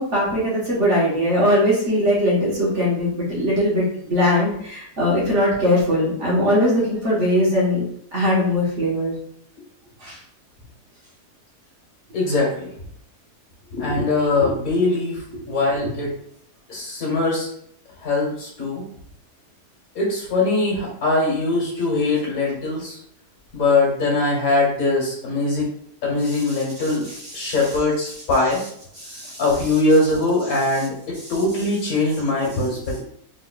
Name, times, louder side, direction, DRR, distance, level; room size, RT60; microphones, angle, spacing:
voice 1, 0.0-7.8 8.1-9.1 10.0-10.2 15.8-15.9 27.3-27.5 29.0-29.4, left 1 dB, 50° right, -5 dB, 1.5 m, -20 dB
voice 2, 12.1-12.7 13.7-16.1 16.7-17.5 18.0-18.8 20.0-23.0 23.5-25.7 26.0-27.0 27.3-28.6 29.4-33.0, left 2 dB, 65° left, -3 dB, 1.8 m, -21 dB
3.7 x 3.6 x 2.3 m, 0.66 s
omnidirectional pair, 1.6 m